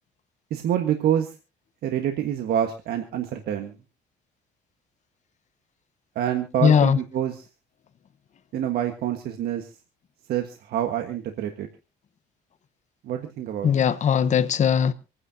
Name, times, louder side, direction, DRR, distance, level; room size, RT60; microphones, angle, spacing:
voice 1, 0.5-1.3 1.8-3.7 6.1-7.4 8.5-9.7 10.3-11.7 13.0-13.7, right 10 dB, 70° right, 1.5 m, -26 dB
voice 2, 6.6-7.0 13.6-14.9, left 8 dB, 45° left, 1.0 m, -19 dB
27.0 x 9.7 x 2.8 m
cardioid pair, 110°, 17 cm